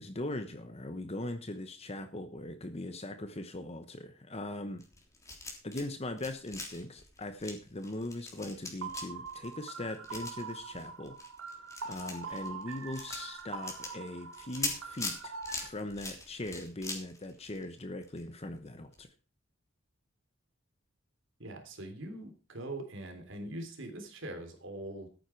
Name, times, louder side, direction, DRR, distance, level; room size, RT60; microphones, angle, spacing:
voice 1, 0.0-4.8 5.6-11.2 11.8-15.3 15.6-19.1, left 1 dB, 30° left, 9 dB, 1.0 m, -40 dB
sound 1, 4.8-5.9 6.1-18.2 18.5-18.7 18.9-19.0, left 3 dB, 15° left, 3.4 m, -42 dB
sound 2, 8.8-15.7, right 5 dB, 80° right, 2.4 m, -43 dB
voice 2, 21.4-25.1, right 1 dB, 65° right, 5 dB, 3.4 m, -42 dB
13.5 x 9.3 x 4.6 m, 0.38 s
head